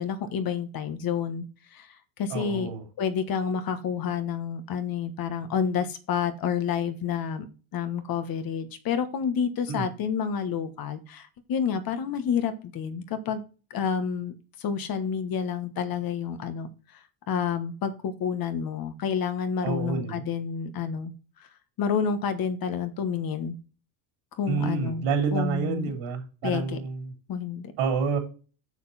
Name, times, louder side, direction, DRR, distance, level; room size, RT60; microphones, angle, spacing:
voice 1, 0.0-1.4 1.7-1.9 2.2-2.7 3.0-7.5 7.7-13.4 13.7-14.3 14.6-16.7 17.3-21.1 21.8-23.5 24.4-25.9 26.4-26.8 27.3-27.7, left 7 dB, 50° left, 10 dB, 1.4 m, -29 dB
voice 2, 2.3-2.8 9.7-9.9 19.6-20.2 24.5-27.1 27.8-28.2, right 5 dB, 80° right, 4 dB, 3.6 m, -28 dB
6.9 x 6.5 x 4.2 m, 0.34 s
cardioid pair, 140°, 47 cm